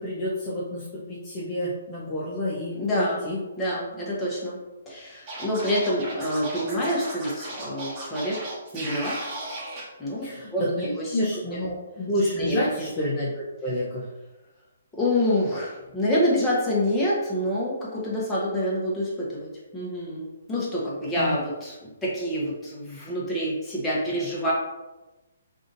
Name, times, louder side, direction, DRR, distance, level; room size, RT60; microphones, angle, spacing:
voice 1, 0.0-3.4 10.2-10.9 11.1-14.1 21.2-21.4, left 1 dB, 30° left, -7 dB, 0.6 m, -29 dB
voice 2, 2.7-3.3 3.6-4.6 4.9-9.1 10.0-10.3 10.5-11.2 11.5-11.6 12.4-12.9 14.9-19.5 19.7-24.5, equal, 10° left, -7 dB, 1.0 m, -27 dB
Scratching (performance technique), 5.3-9.8, right 1 dB, 30° right, 1.1 m, -36 dB
3.6 x 2.5 x 2.6 m, 1.1 s
hypercardioid pair, 145°, 0 cm